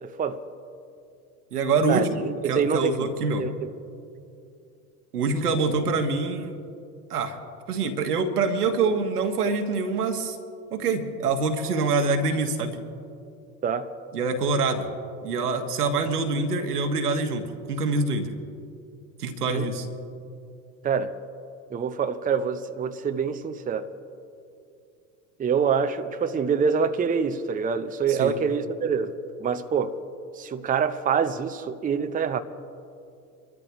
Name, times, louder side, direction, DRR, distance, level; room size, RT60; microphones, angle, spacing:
voice 1, 0.0-0.4 1.9-3.1 3.4-3.7 13.6-13.9 19.5-19.7 20.8-21.2 21.7-23.9 25.4-29.1 29.4-29.9 30.4-32.4, right 6 dB, 20° right, 0.7 m, -26 dB
voice 2, 1.5-2.1 2.4-3.5 5.1-6.6 7.1-7.4 7.7-10.4 10.7-12.8 14.1-14.8 15.2-18.3 19.2-19.9 28.1-28.3, right 3 dB, 80° right, 1.4 m, -25 dB
26.5 x 13.5 x 3.1 m
hypercardioid pair, 70°, 45 cm